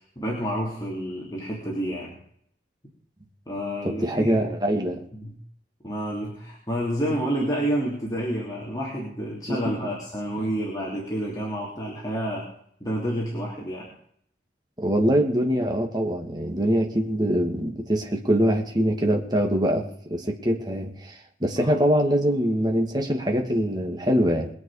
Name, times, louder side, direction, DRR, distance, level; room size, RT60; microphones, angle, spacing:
voice 1, 0.1-2.2 3.5-4.4 5.1-5.3 5.8-12.5 12.8-13.9 21.6-21.7, equal, 20° left, -4 dB, 3.3 m, -29 dB
voice 2, 3.8-5.0 9.5-9.6 14.8-24.5, equal, 25° right, 2 dB, 2.5 m, -23 dB
22.5 x 8.5 x 5.1 m, 0.65 s
head